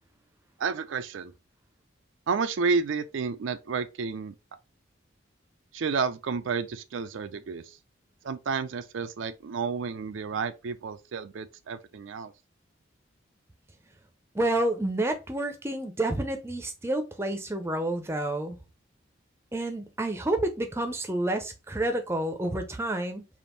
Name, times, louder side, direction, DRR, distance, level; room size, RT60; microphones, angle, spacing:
voice 1, 0.6-1.3 2.3-4.3 5.7-7.8 8.2-12.3, right 5 dB, 75° right, 0.4 m, -31 dB
voice 2, 14.3-18.6 19.5-23.3, right 1 dB, 15° right, 0.5 m, -29 dB
3.5 x 2.5 x 3.8 m
head